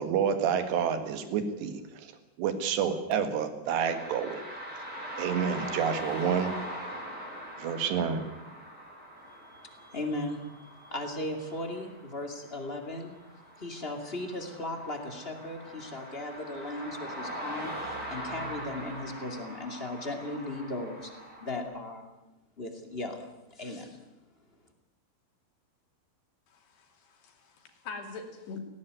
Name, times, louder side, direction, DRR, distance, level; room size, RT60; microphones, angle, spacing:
voice 1, 0.0-2.1 2.4-4.4 5.2-6.6 7.6-8.3, right 7 dB, 80° right, 9 dB, 4.0 m, -29 dB
sound 1, 3.7-21.6, right 1 dB, 20° right, 5.9 m, -42 dB
voice 2, 9.3-13.2 13.6-21.1 21.4-22.0 22.6-23.2 23.5-24.0, left 2 dB, 20° left, 4 dB, 1.7 m, -37 dB
voice 3, 26.5-28.6, left 4 dB, 75° left, 4 dB, 4.8 m, -43 dB
18.5 x 17.5 x 9.5 m, 0.95 s
omnidirectional pair, 4.8 m